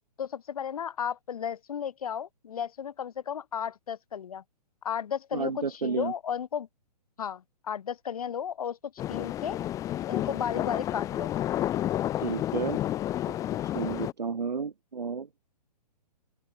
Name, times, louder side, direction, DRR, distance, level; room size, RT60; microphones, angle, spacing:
voice 1, 0.2-4.4 4.8-6.7 7.2-9.6 10.1-11.3, left 8 dB, 60° left, 1.2 m, -34 dB
voice 2, 5.3-6.1 12.2-12.8 13.3-13.4 13.6-15.3, right 5 dB, 80° right, 1.1 m, -32 dB
sound 1, 9.0-14.1, left 12 dB, 15° left, 0.9 m, -31 dB
open air
figure-of-eight pair, 130°, 21 cm